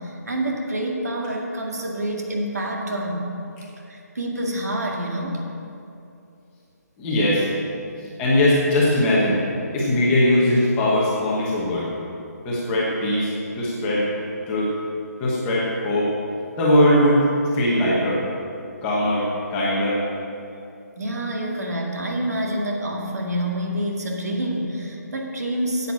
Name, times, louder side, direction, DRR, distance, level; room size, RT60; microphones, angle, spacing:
voice 1, 0.0-3.3 3.9-5.4 8.0-8.1 21.0-25.9, right 1 dB, 65° right, 0 dB, 2.1 m, -27 dB
voice 2, 7.0-7.5 8.2-9.4 9.7-11.9 12.4-13.3 13.6-14.1 14.5-14.7 15.2-16.1 16.6-17.2 17.5-18.2 18.8-20.0, left 1 dB, 10° left, -6 dB, 1.1 m, -20 dB
10.5 x 8.2 x 7.2 m, 2.7 s
hypercardioid pair, 180°, 9 cm